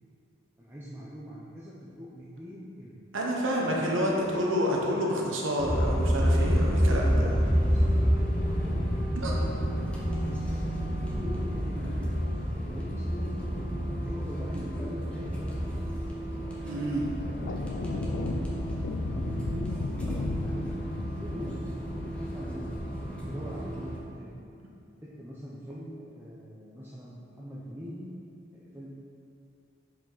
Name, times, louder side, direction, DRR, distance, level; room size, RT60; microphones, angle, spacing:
voice 1, 0.6-3.0 3.7-4.6 5.0-5.1 6.9-10.6 11.0-13.6 14.0-16.1 16.4-16.6 17.2-20.8 21.1-22.8 23.1-24.4 25.0-28.1 28.5-28.9, equal, 10° right, -8 dB, 0.8 m, -42 dB
voice 2, 3.1-7.3 9.2-9.4 16.6-17.1, equal, 75° right, -2 dB, 1.1 m, -29 dB
sound 1, 5.6-24.0, equal, 5° left, 1.0 m, -29 dB
sound 2, 17.2-22.9, left 3 dB, 60° left, 0.4 m, -35 dB
7.4 x 5.0 x 4.0 m, 2.6 s
head